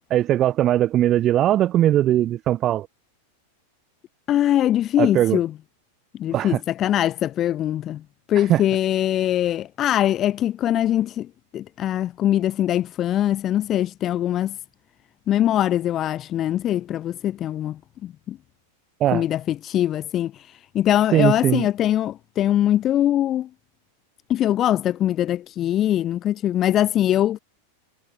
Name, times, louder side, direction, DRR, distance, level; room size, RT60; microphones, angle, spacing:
voice 1, 0.1-2.9 5.0-5.4 6.3-6.6 8.4-8.6 19.0-19.2 21.1-21.7, right 12 dB, 30° right, 0.3 m, -20 dB
voice 2, 4.3-5.5 6.2-8.0 8.3-11.3 11.5-14.6 15.3-18.4 19.1-23.5 24.3-27.4, left 12 dB, 30° left, 0.5 m, -22 dB
figure-of-eight pair, 90°, 0 cm